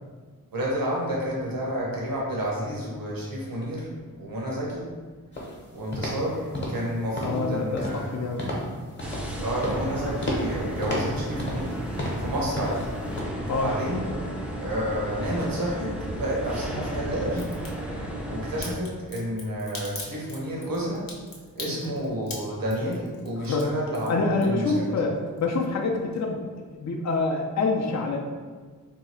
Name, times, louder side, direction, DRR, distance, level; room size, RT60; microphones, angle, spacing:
voice 1, 0.5-3.9 4.2-4.8 5.7-8.0 9.4-11.8 12.2-12.9 13.5-14.1 14.6-17.5 18.3-21.1 21.5-24.8, equal, 80° right, -4 dB, 0.9 m, -30 dB
sound 1, 5.3-5.6 5.9-6.2 6.5-6.9 7.2-7.4 7.8-8.1 8.4-8.7 9.0-9.3 9.6-9.9 10.2-10.5 10.8-11.7 12.0-12.3 12.6-12.9 13.2-13.3, left 1 dB, 35° left, 0.9 m, -31 dB
voice 2, 7.2-8.4 13.5-13.7 21.7-21.8 23.4-23.7 24.1-28.2, left 3 dB, 55° left, 1 dB, 0.5 m, -26 dB
sound 2, 9.0-18.7, right 1 dB, 5° right, 0.4 m, -33 dB
Crack, 17.3-17.7 18.6-24.9 25.2-25.8 26.1-26.2, left 3 dB, 75° left, 0.8 m, -40 dB
2.8 x 2.3 x 4.2 m, 1.5 s
wide cardioid pair, 80°, 34 cm